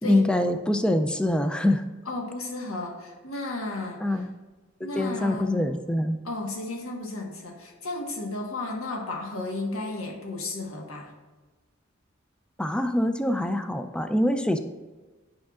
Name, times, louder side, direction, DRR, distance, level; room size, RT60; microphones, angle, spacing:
voice 1, 0.0-1.8 4.0-4.3 5.0-6.2 12.6-14.6, left 1 dB, 5° left, 7 dB, 0.3 m, -24 dB
voice 2, 2.0-4.0 4.8-5.7 6.2-11.1, left 2 dB, 85° left, 1 dB, 1.3 m, -33 dB
8.7 x 5.7 x 2.4 m, 1.3 s
head